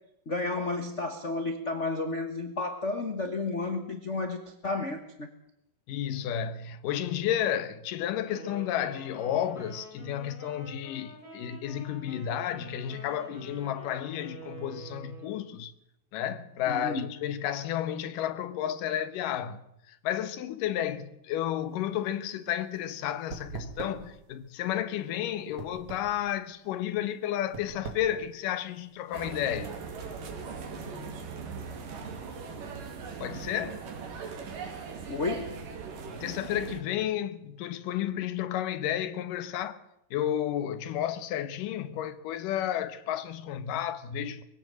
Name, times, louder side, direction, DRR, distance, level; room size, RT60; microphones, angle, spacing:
voice 1, 0.3-5.3 16.7-17.1 35.1-35.5, left 3 dB, 55° left, 0.8 m, -32 dB
voice 2, 5.9-15.7 16.1-29.7 33.2-33.8 36.1-39.8 40.1-44.4, left 11 dB, 85° left, 2.7 m, -32 dB
Wind instrument woodwind instrument, 8.2-15.4, right 3 dB, 25° right, 7.7 m, -47 dB
sound 1, 21.7-29.2, right 4 dB, 65° right, 3.9 m, -44 dB
sound 2, 29.1-36.8, right 5 dB, 85° right, 4.0 m, -39 dB
22.0 x 16.0 x 7.6 m
omnidirectional pair, 3.7 m